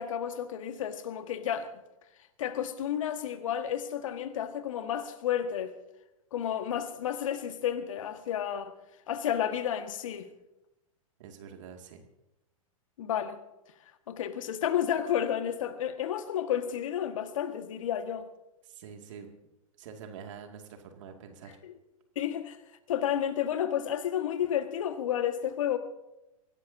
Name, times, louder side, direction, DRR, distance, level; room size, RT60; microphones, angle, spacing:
voice 1, 0.0-1.7 2.4-5.7 6.3-8.7 9.1-10.3 13.0-13.4 14.1-18.3 21.6-21.8 22.2-22.6 22.9-25.8, left 10 dB, 65° left, 1.7 m, -31 dB
voice 2, 11.2-12.0 18.6-19.3 19.8-21.6, right 7 dB, 60° right, 2.4 m, -46 dB
24.0 x 17.0 x 2.8 m
hypercardioid pair, 105°, 18 cm